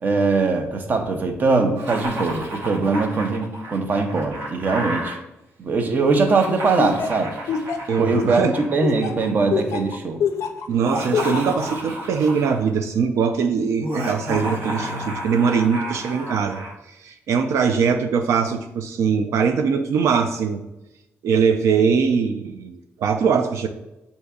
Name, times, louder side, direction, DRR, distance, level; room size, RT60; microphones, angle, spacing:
voice 1, 0.0-5.2 5.6-7.3 8.0-8.4 8.7-10.2, right 4 dB, 40° right, 5 dB, 0.5 m, -21 dB
Laughter, 1.8-5.2 6.1-9.4 10.7-12.7 13.8-16.7, right 1 dB, 60° right, 0.9 m, -32 dB
Laughter 2, 6.8-10.7 11.1-11.6, left 7 dB, 80° left, 0.4 m, -25 dB
voice 2, 7.9-8.5 10.7-20.6 21.2-23.7, right 6 dB, 85° right, 6 dB, 0.4 m, -21 dB
7.9 x 2.7 x 2.3 m, 0.93 s
wide cardioid pair, 165°, 5 cm